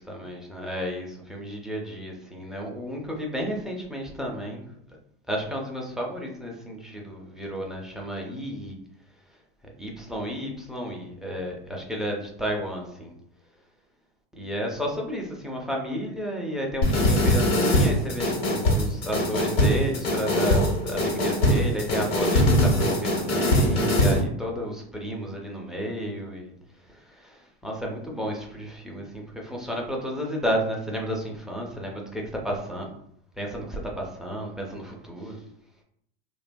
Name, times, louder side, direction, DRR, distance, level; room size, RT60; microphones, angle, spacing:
voice 1, 0.1-4.6 5.3-8.8 9.6-13.1 14.3-26.5 26.8-32.9 33.4-35.4, equal, ahead, -1 dB, 0.3 m, -32 dB
sound 1, 16.8-24.2, left 1 dB, 80° left, 1.1 m, -22 dB
2.8 x 2.2 x 2.5 m, 0.70 s
supercardioid pair, 115°, 30 cm